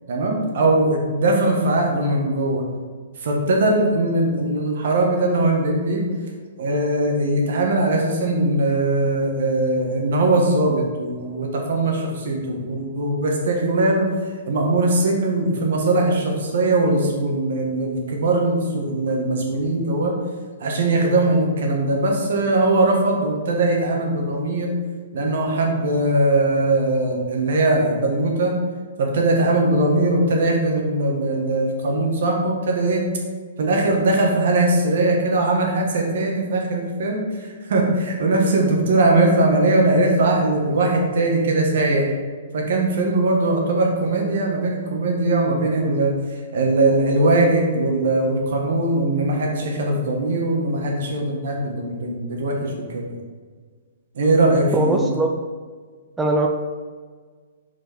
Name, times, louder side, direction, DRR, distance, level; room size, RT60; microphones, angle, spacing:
voice 1, 0.1-2.6 3.2-6.0 6.6-14.1 14.5-20.1 20.6-24.7 25.1-28.5 29.0-33.0 33.6-42.1 42.5-46.1 46.5-53.1 54.1-55.1, right 2 dB, 65° right, 0 dB, 1.5 m, -20 dB
voice 2, 54.7-55.3 56.2-56.5, right 1 dB, 5° right, 2 dB, 0.4 m, -20 dB
5.0 x 4.7 x 4.5 m, 1.5 s
hypercardioid pair, 160°, 0 cm